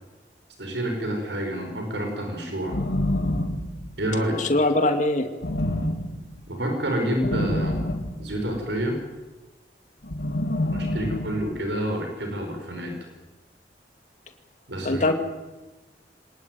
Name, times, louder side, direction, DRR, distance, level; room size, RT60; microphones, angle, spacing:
voice 1, 0.6-2.8 4.0-4.4 6.5-7.8 8.2-8.9 10.7-12.9 14.7-15.0, right 1 dB, 90° right, 3 dB, 5.7 m, -28 dB
sound 1, 2.7-4.2 5.4-6.4 7.2-8.7 10.0-11.6, left 1 dB, 75° left, 2.2 m, -27 dB
voice 2, 4.4-5.3 14.8-15.1, left 2 dB, 45° left, 6 dB, 2.5 m, -21 dB
25.5 x 19.0 x 9.5 m, 1.2 s
head